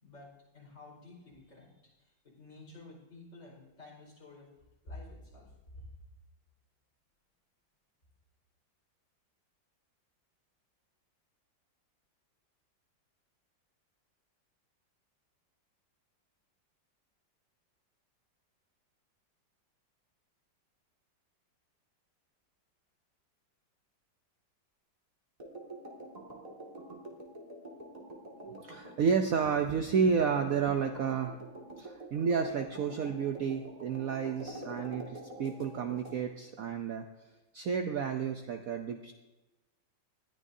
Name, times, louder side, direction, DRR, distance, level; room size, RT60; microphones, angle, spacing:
voice 1, 0.0-1.7 2.0-4.5 4.8-5.9, left 2 dB, 40° left, -4 dB, 5.2 m, -51 dB
sound 1, 25.4-36.2, right 1 dB, 20° right, 2.1 m, -47 dB
voice 2, 28.4-31.4 31.8-37.0 37.5-39.1, right 6 dB, 60° right, 6 dB, 1.0 m, -31 dB
20.0 x 13.5 x 2.7 m, 1.1 s
omnidirectional pair, 2.0 m